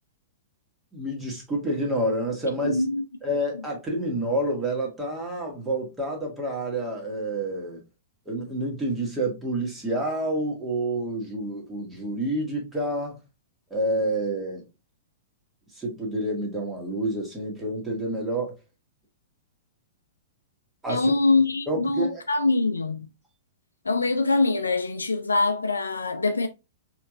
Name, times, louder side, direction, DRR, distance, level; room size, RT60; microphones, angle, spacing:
voice 1, 0.9-2.8 3.2-7.8 8.2-13.2 13.7-14.6 15.7-18.6 20.8-21.1 21.7-22.2, right 1 dB, 15° right, 1.6 m, -28 dB
voice 2, 2.6-3.0 20.9-23.1 23.8-26.5, left 3 dB, 80° left, 0.5 m, -23 dB
4.2 x 3.1 x 2.4 m
figure-of-eight pair, 105°, 0 cm